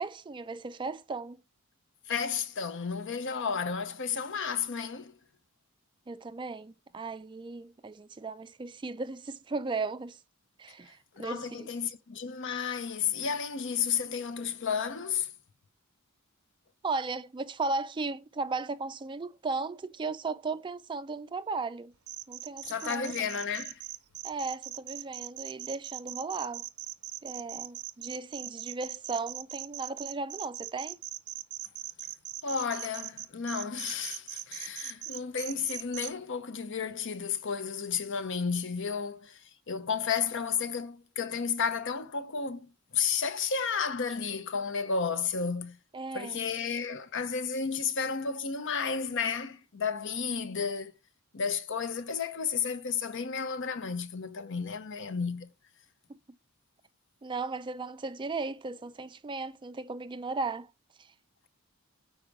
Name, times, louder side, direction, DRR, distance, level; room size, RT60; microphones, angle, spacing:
voice 1, 0.0-1.4 6.1-10.2 10.6-11.7 16.8-21.9 22.3-23.1 24.2-26.6 27.2-31.0 45.9-46.5 56.1-56.2 57.2-60.7 61.0-61.1, right 3 dB, 20° right, 0.3 m, -36 dB
voice 2, 2.1-5.1 11.2-15.3 22.6-23.8 32.4-39.4 39.7-45.8 46.1-50.9 51.3-55.5, left 6 dB, 60° left, 0.7 m, -32 dB
sound 1, 22.1-36.1, right 14 dB, 75° right, 0.6 m, -40 dB
6.5 x 4.8 x 4.7 m
head